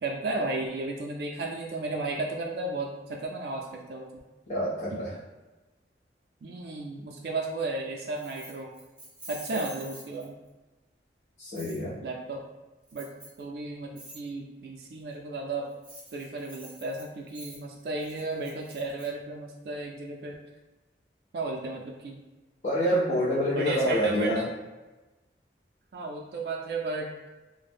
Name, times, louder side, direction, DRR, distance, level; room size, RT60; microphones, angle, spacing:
voice 1, 0.0-4.1 6.4-8.7 9.3-10.4 12.0-12.4 12.9-13.1 13.4-15.7 16.1-20.4 21.3-22.2 23.5-24.5 25.9-27.1, right 2 dB, 60° right, 0 dB, 0.3 m, -34 dB
voice 2, 4.5-5.1 9.5-9.6 11.4-12.0 22.6-24.4, equal, 40° left, -10 dB, 0.6 m, -27 dB
Keys jangling, 8.2-10.5 11.6-11.8 12.9-13.4 14.0-14.2 15.7-19.1, right 1 dB, 5° right, 0.6 m, -47 dB
2.5 x 2.0 x 3.3 m, 1.1 s
head